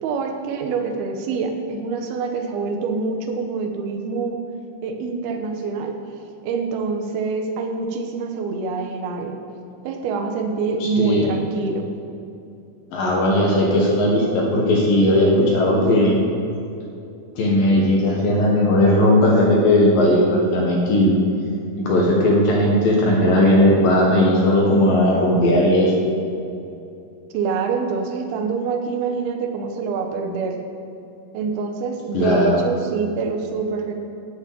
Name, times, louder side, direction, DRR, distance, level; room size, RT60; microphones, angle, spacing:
voice 1, 0.0-4.4 4.8-6.0 6.4-9.4 9.8-11.9 27.3-30.6 31.3-33.9, right 4 dB, 70° right, 4 dB, 2.6 m, -25 dB
voice 2, 10.8-11.3 12.9-16.2 17.4-21.1 21.8-25.9 32.1-32.6, left 1 dB, 60° left, -2 dB, 2.7 m, -17 dB
11.5 x 7.4 x 8.5 m, 2.7 s
omnidirectional pair, 5.4 m